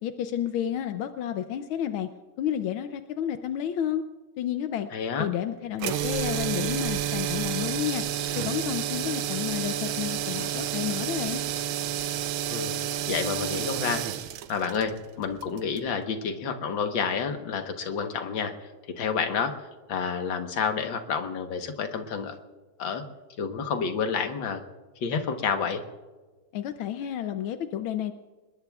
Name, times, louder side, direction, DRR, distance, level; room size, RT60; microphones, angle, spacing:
voice 1, 0.0-2.1 2.4-4.0 4.4-4.9 5.2-8.0 8.3-11.4 26.5-28.1, left 10 dB, 90° left, 8 dB, 1.6 m, -31 dB
voice 2, 4.9-5.3 12.5-12.7 13.1-14.0 14.5-18.7 19.0-22.4 22.8-23.0 23.4-24.6 25.0-25.8, left 6 dB, 70° left, 6 dB, 2.0 m, -29 dB
sound 1, 5.8-15.9, right 10 dB, 85° right, 1.5 m, -30 dB
26.5 x 21.0 x 2.4 m, 1.3 s
omnidirectional pair, 2.2 m